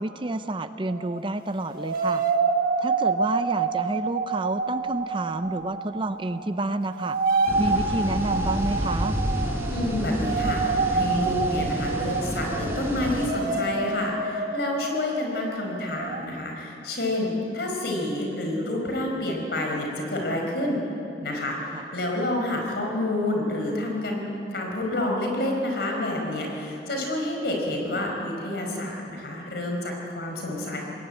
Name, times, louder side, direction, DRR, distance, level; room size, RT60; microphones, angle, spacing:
voice 1, 0.0-2.2 2.8-7.2 7.6-9.2 21.7-21.8, right 2 dB, 30° right, 11 dB, 0.6 m, -29 dB
sound 1, 0.9-1.2 1.7-6.5 6.7-16.3, right 4 dB, 50° right, 1.2 m, -28 dB
sound 2, 7.5-13.3, equal, 15° right, 4.4 m, -30 dB
voice 2, 9.7-20.8 21.2-30.8, left 1 dB, 65° left, 1 dB, 4.9 m, -29 dB
21.0 x 17.5 x 8.8 m, 2.9 s
head